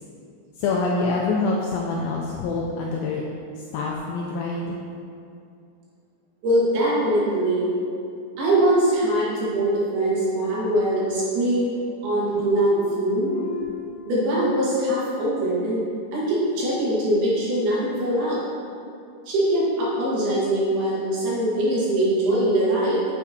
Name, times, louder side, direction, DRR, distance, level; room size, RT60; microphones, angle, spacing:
voice 1, 0.6-3.2 3.6-4.8, left 3 dB, 85° left, -2 dB, 2.1 m, -26 dB
voice 2, 6.4-7.7 8.4-11.7 12.0-13.3 14.1-15.8 16.1-18.4 19.3-23.0, right 1 dB, 75° right, -7 dB, 3.7 m, -22 dB
sound 1, 10.6-10.8 11.1-12.0 12.3-13.9, left 11 dB, 65° left, 1.5 m, -39 dB
9.6 x 5.9 x 2.8 m, 2.5 s
omnidirectional pair, 4.7 m